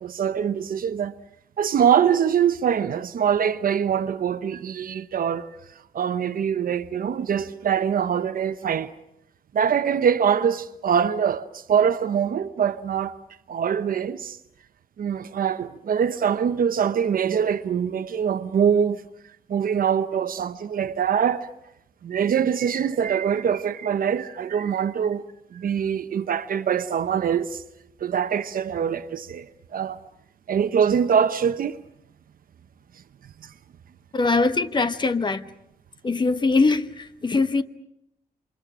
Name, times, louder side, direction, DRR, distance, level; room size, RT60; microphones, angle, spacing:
voice 1, 0.0-1.1 1.6-5.5 5.9-8.9 9.5-13.1 13.5-14.4 15.0-19.0 19.5-21.5 22.0-25.2 25.5-27.6 28.0-29.5 29.7-30.0 30.5-31.8 33.4-33.5, right 8 dB, 65° right, 0.9 m, -23 dB
voice 2, 34.1-35.5 36.0-37.6, left 3 dB, 30° left, 1.0 m, -22 dB
28.5 x 25.5 x 6.2 m
wide cardioid pair, 135°, 16 cm